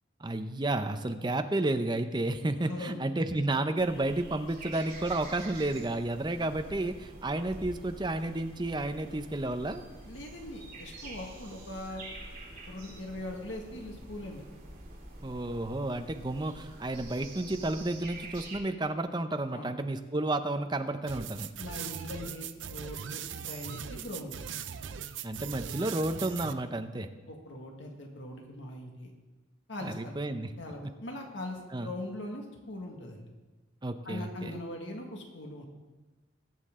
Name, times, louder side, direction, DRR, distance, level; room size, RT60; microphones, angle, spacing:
voice 1, 0.2-9.8 15.2-21.5 25.2-27.1 29.8-30.5 31.7-31.9 33.8-34.6, right 2 dB, 25° right, 8 dB, 0.6 m, -31 dB
voice 2, 2.7-3.1 10.0-12.0 12.7-14.4 19.5-19.7 21.6-24.4 27.3-29.1 29.7-30.1 30.6-33.3 34.0-35.7, left 1 dB, 70° left, 1 dB, 1.7 m, -41 dB
sound 1, 3.8-18.6, right 2 dB, 45° right, 3.0 m, -47 dB
sound 2, 21.1-26.5, right 8 dB, 75° right, 0.5 m, -40 dB
21.0 x 7.5 x 3.7 m, 1.2 s
head